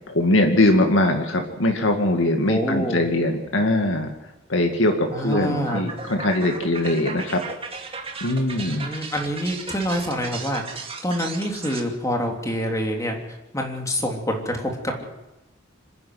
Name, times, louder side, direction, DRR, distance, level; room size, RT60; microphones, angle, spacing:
voice 1, 0.1-4.1 4.5-7.4 8.2-8.9, left 1 dB, 85° left, 3 dB, 2.1 m, -21 dB
voice 2, 2.5-3.0 5.1-5.8 8.5-13.2 13.5-15.0, equal, 15° left, 2 dB, 3.2 m, -26 dB
sound 1, 4.9-11.8, right 4 dB, 30° right, 2.3 m, -36 dB
25.5 x 11.0 x 9.4 m, 1.0 s
head